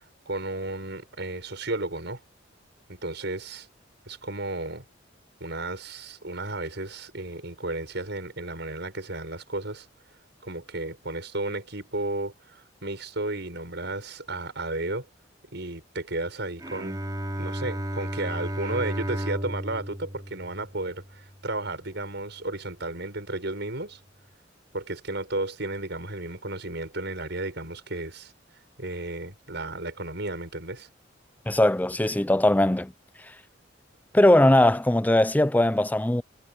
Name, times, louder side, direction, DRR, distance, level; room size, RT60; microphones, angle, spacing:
voice 1, 0.3-2.2 2.9-3.7 4.1-4.8 5.4-9.9 10.4-15.1 15.5-17.0 17.4-24.0 24.7-28.3 28.8-30.9, right 2 dB, 65° right, 7.4 m, -33 dB
Bowed string instrument, 16.6-21.9, equal, 20° right, 2.9 m, -34 dB
voice 2, 31.5-32.9 34.1-36.2, left 1 dB, 10° left, 0.5 m, -20 dB
head